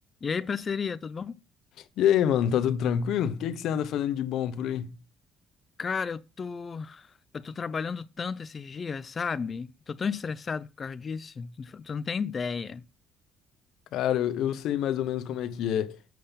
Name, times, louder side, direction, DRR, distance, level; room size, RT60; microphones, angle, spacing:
voice 1, 0.2-1.4 5.8-12.8, left 5 dB, 35° left, 0.6 m, -33 dB
voice 2, 2.0-4.9 13.9-16.0, left 9 dB, 75° left, 0.9 m, -26 dB
7.7 x 5.7 x 5.2 m
cardioid pair, 115°, 0 cm